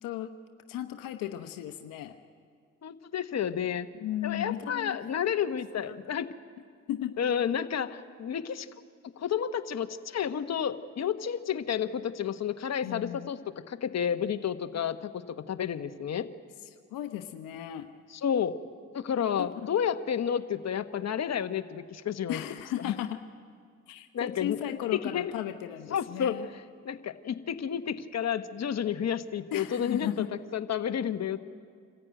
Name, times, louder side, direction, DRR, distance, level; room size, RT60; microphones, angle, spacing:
voice 1, 0.0-0.3 0.7-2.1 4.0-5.0 5.9-6.0 6.9-7.1 12.8-13.3 16.9-17.9 19.4-19.5 22.3-23.2 23.9-26.5 29.5-30.3, left 11 dB, 85° left, 7 dB, 0.9 m, -35 dB
voice 2, 2.8-3.9 4.2-6.3 7.2-8.7 9.2-16.3 18.1-18.6 18.9-22.4 22.8-22.9 24.1-24.6 24.9-25.3 25.9-26.4 26.8-30.2 30.5-31.4, left 8 dB, 50° left, 9 dB, 1.1 m, -31 dB
26.5 x 14.5 x 9.1 m, 2.1 s
supercardioid pair, 60°, 33 cm